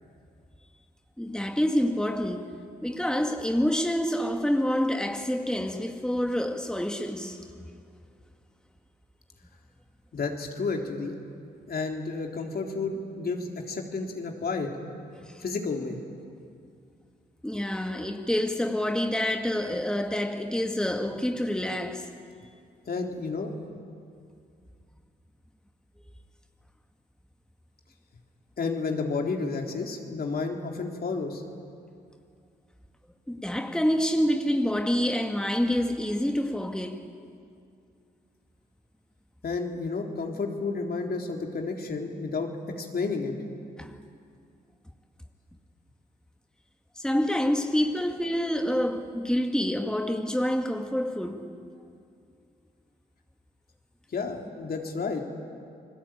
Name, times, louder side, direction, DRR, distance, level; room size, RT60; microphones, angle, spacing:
voice 1, 1.2-7.6 15.3-15.4 17.4-22.1 33.3-37.1 43.8-44.0 47.0-51.5, equal, 5° left, 2.0 m, -27 dB
voice 2, 10.1-11.2 11.7-14.7 15.4-16.0 22.9-23.5 28.6-31.4 39.4-42.5 42.8-43.3 54.1-55.2, left 4 dB, 60° left, 3.7 m, -31 dB
29.0 x 20.5 x 9.1 m
supercardioid pair, 55°, 18 cm